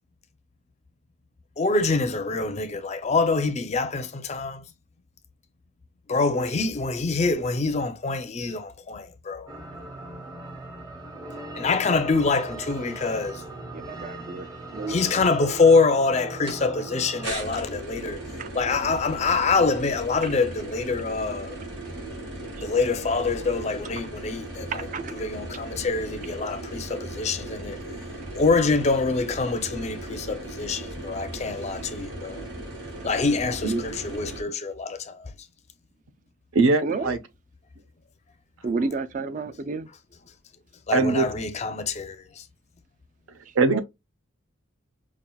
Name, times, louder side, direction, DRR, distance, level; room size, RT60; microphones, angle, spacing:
voice 1, 1.6-4.6 6.1-9.5 11.5-13.4 14.9-18.2 18.5-21.6 22.6-24.9 25.1-27.8 28.4-32.5 33.0-35.3 40.9-42.4, left 4 dB, 30° left, 0.4 m, -25 dB
sound 1, 9.5-17.3, right 2 dB, 20° right, 0.7 m, -39 dB
voice 2, 13.7-14.5 14.7-15.0 18.4-18.5 24.7-25.1 36.8-37.2 38.6-39.9 43.7-43.8, right 4 dB, 40° right, 0.3 m, -30 dB
sound 2, 16.5-16.6 17.2-34.4, right 1 dB, 55° right, 2.0 m, -37 dB
voice 3, 36.5-37.2 40.9-41.3 43.6-43.8, right 3 dB, 80° right, 0.7 m, -21 dB
5.3 x 2.4 x 2.2 m
head